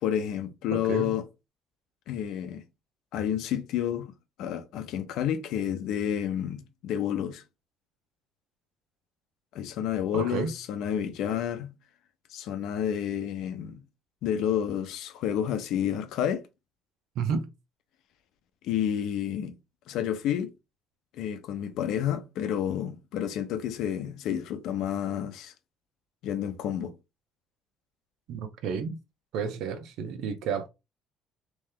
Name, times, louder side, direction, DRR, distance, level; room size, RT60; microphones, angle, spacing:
voice 1, 0.0-1.2 2.1-2.6 3.1-4.1 4.4-7.4 9.5-11.7 12.3-13.8 14.2-16.5 18.6-19.5 19.9-20.5 21.1-25.5 26.2-27.0, left 9 dB, 75° left, 0.7 m, -30 dB
voice 2, 0.7-1.2 10.1-10.5 17.1-17.5 28.3-29.0 29.3-30.7, right 6 dB, 70° right, 0.8 m, -31 dB
3.2 x 3.0 x 3.6 m
cardioid pair, 135°, 0 cm